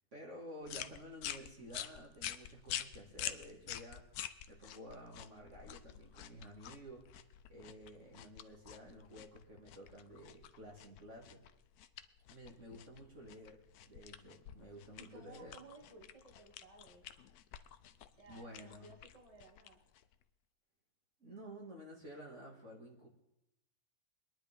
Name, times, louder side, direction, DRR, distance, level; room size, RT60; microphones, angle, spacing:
voice 1, 0.1-4.1 4.5-7.1 7.5-11.4 12.3-13.6 13.9-15.6 18.3-18.9 21.2-23.1, equal, 40° right, -2 dB, 2.3 m, -52 dB
sound 1, 0.6-20.2, left 11 dB, 65° left, 1.0 m, -48 dB
voice 2, 15.0-17.0 17.8-19.8, right 3 dB, 20° right, -1 dB, 2.0 m, -58 dB
24.0 x 10.5 x 3.5 m, 0.85 s
omnidirectional pair, 2.0 m